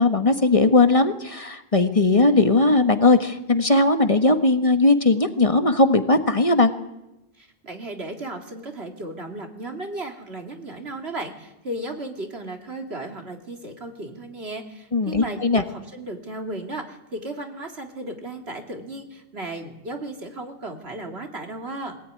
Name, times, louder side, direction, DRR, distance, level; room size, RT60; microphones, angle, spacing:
voice 1, 0.0-6.7 14.9-15.6, left 2 dB, 35° left, 8 dB, 1.4 m, -18 dB
voice 2, 7.4-22.0, right 2 dB, 85° right, 4 dB, 3.0 m, -35 dB
22.5 x 18.0 x 9.6 m, 0.94 s
omnidirectional pair, 1.0 m